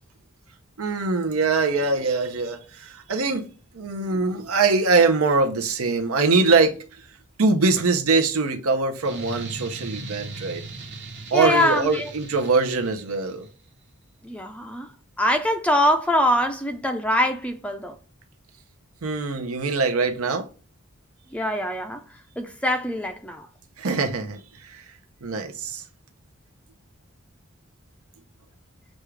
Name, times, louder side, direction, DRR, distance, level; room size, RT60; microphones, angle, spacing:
voice 1, 0.8-3.5 3.7-6.8 7.4-10.6 11.3-13.5 19.0-20.5 23.8-24.8 25.2-25.8, right 4 dB, 85° right, 0.7 m, -23 dB
sound 1, 9.0-13.5, right 3 dB, 55° right, 1.0 m, -38 dB
voice 2, 11.3-12.1 14.2-14.9 15.2-18.0 21.3-22.0 22.4-23.5, left 1 dB, 5° left, 0.4 m, -23 dB
6.3 x 2.4 x 3.2 m
head